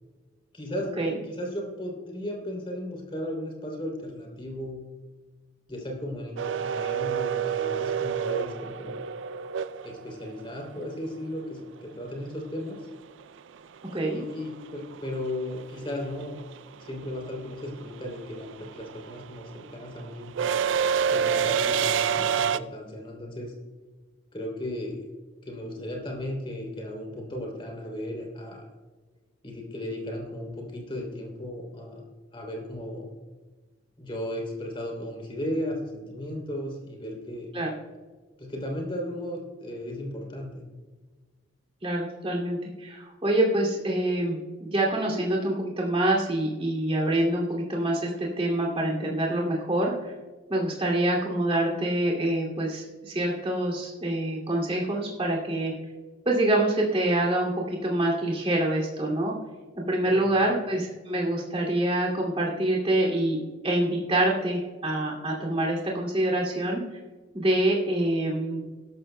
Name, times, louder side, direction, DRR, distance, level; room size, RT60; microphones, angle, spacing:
voice 1, 0.5-0.9 1.2-4.8 5.7-9.0 9.8-12.9 14.1-16.4 16.8-20.3 21.1-23.5 24.3-25.1 25.4-28.6 29.4-32.0 32.3-33.1 34.0-37.5 38.4-40.6 60.0-60.2, left 1 dB, 25° left, 0 dB, 3.0 m, -35 dB
sound 1, 6.4-10.4 12.8-12.9 14.2-14.5 14.8-22.6, right 7 dB, 75° right, 0.4 m, -28 dB
voice 2, 41.8-50.1 50.5-55.7 56.3-59.3 59.8-63.4 63.6-66.8 67.3-68.6, right 1 dB, 30° right, -2 dB, 2.5 m, -26 dB
17.0 x 12.5 x 2.2 m, 1.3 s
head